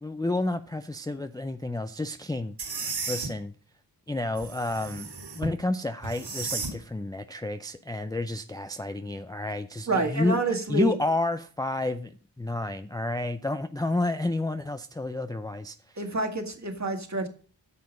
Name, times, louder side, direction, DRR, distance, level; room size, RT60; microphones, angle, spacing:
voice 1, 0.0-2.6 2.8-3.5 4.1-10.4 10.7-15.8, left 2 dB, 10° left, 8 dB, 0.4 m, -30 dB
sound 1, 2.6-3.3 4.4-5.5 6.0-6.7, right 4 dB, 65° right, 3.7 m, -34 dB
voice 2, 9.9-10.9 16.0-17.3, right 2 dB, 40° right, 4 dB, 1.8 m, -28 dB
9.6 x 6.7 x 5.2 m, 0.40 s
wide cardioid pair, 105°, 45 cm